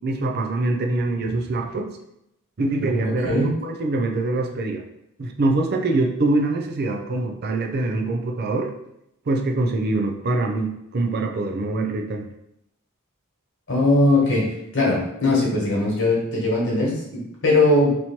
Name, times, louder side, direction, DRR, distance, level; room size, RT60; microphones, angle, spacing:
voice 1, 0.0-1.9 2.6-4.8 5.2-8.7 9.3-12.3, right 2 dB, 45° right, 2 dB, 0.4 m, -24 dB
voice 2, 3.0-3.5 13.7-18.0, left 2 dB, 55° left, -3 dB, 1.4 m, -20 dB
3.0 x 2.8 x 4.3 m, 0.82 s
head